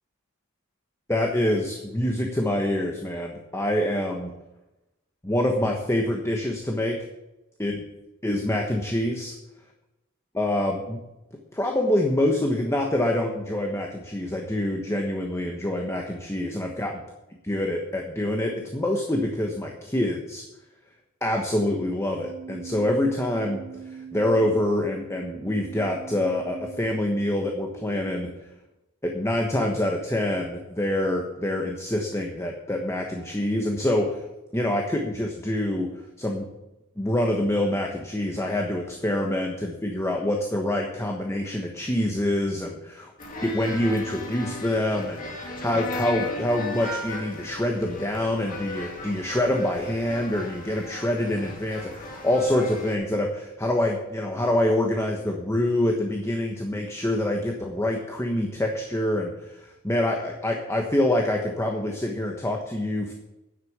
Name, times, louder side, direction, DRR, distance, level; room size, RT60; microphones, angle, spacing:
voice 1, 1.1-4.3 5.2-7.0 7.6-7.8 8.2-9.3 10.3-11.0 11.5-16.9 17.5-20.4 21.2-28.3 29.0-34.2 34.5-35.9 36.2-36.5 37.0-42.9 43.4-63.1, left 1 dB, 15° left, 1 dB, 1.2 m, -26 dB
Keyboard (musical), 22.1-28.0, right 5 dB, 5° right, 5.1 m, -42 dB
sound 1, 43.2-53.0, left 1 dB, 40° left, 2.3 m, -36 dB
10.0 x 8.0 x 7.3 m, 0.94 s
head